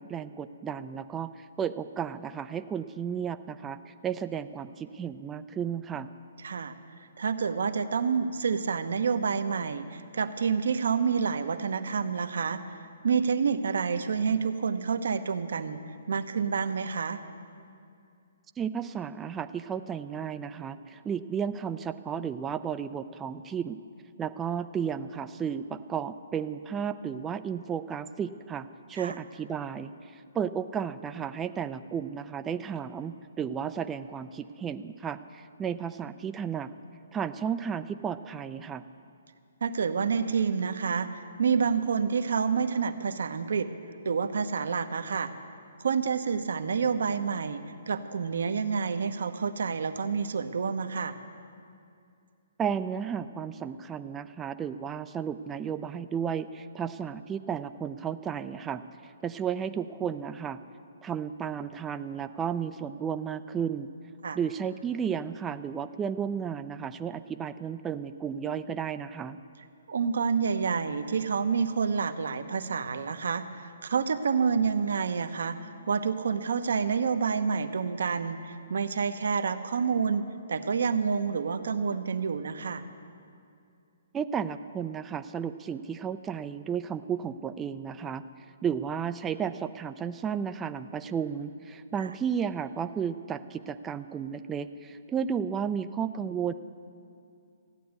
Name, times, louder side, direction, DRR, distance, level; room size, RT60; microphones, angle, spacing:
voice 1, 0.0-6.1 18.6-23.8 24.2-36.7 37.1-38.8 52.6-60.6 61.0-63.9 64.3-69.4 84.1-88.2 88.6-96.5, right 7 dB, 15° right, 10 dB, 0.4 m, -33 dB
voice 2, 6.4-6.7 7.2-12.6 13.0-15.8 16.1-17.2 29.0-29.2 39.6-43.7 44.0-45.3 45.8-47.6 47.9-51.1 64.2-64.4 69.9-80.2 80.5-82.8 92.0-92.1, right 6 dB, 70° right, 10 dB, 0.8 m, -28 dB
14.0 x 9.4 x 8.1 m, 2.5 s
hypercardioid pair, 135°, 0 cm